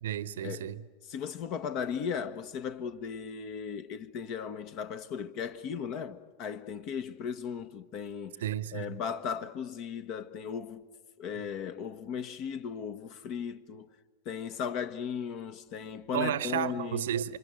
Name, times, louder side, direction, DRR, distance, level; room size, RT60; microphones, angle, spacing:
voice 1, 0.0-0.8 8.4-8.9 16.1-17.4, right 10 dB, 60° right, 1.0 m, -32 dB
voice 2, 1.0-8.4 8.7-10.8 11.2-13.9 14.2-17.0, left 7 dB, 40° left, 1.3 m, -36 dB
28.0 x 25.0 x 6.5 m
figure-of-eight pair, 90°, 0 cm